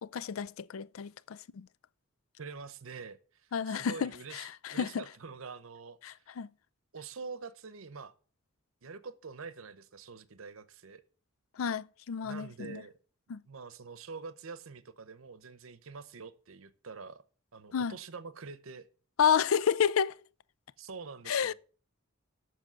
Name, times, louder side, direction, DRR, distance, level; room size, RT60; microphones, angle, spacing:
voice 1, 0.0-1.7 3.5-5.0 6.0-6.5 11.6-12.8 13.3-13.4 17.7-18.0 19.2-20.1 21.3-21.5, left 7 dB, 75° left, 0.4 m, -30 dB
voice 2, 2.4-6.2 6.9-8.1 8.8-11.0 12.2-12.9 13.5-17.2 17.5-18.9 20.8-21.5, right 4 dB, 75° right, 0.8 m, -46 dB
7.5 x 6.3 x 7.8 m
head